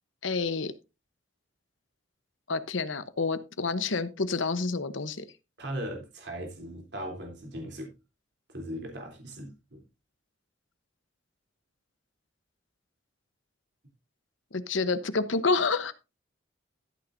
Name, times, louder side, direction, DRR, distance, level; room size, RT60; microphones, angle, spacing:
voice 1, 0.2-0.7 2.5-5.2 14.5-15.9, left 4 dB, 80° left, 1.0 m, -28 dB
voice 2, 5.6-7.9 8.5-9.8, equal, 60° right, 3.3 m, -38 dB
14.0 x 9.0 x 2.6 m
head